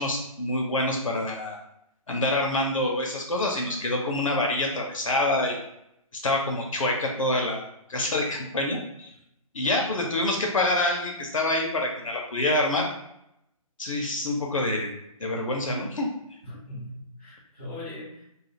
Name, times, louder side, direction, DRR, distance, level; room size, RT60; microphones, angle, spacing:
voice 1, 0.0-1.6 2.1-5.6 6.1-7.6 7.9-9.1 9.5-12.9 13.8-14.9 15.2-16.1, left 1 dB, 60° left, 0 dB, 0.5 m, -26 dB
voice 2, 16.4-18.2, left 1 dB, 5° right, -13 dB, 0.3 m, -40 dB
2.4 x 2.3 x 2.7 m, 0.80 s
figure-of-eight pair, 145°, 19 cm